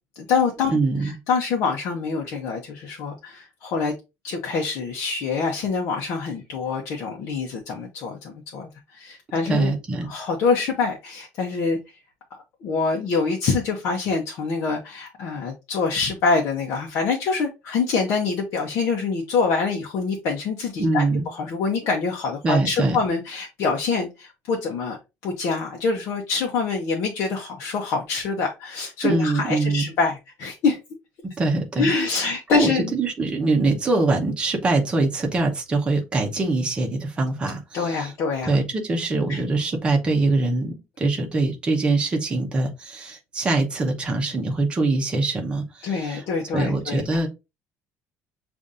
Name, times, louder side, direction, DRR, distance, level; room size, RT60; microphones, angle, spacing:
voice 1, 0.2-3.9 4.2-9.7 10.1-11.8 12.6-21.0 21.3-25.0 25.2-30.8 31.8-32.9 37.7-38.5 39.3-39.4 45.8-47.0, left 4 dB, 55° left, 0.8 m, -25 dB
voice 2, 0.7-1.2 9.5-10.1 20.8-21.3 22.4-23.0 29.0-29.9 31.4-31.9 32.2-38.1 38.4-46.2 46.5-47.3, right 3 dB, 20° right, 0.9 m, -23 dB
6.9 x 2.6 x 2.5 m
cardioid pair, 175°, 5 cm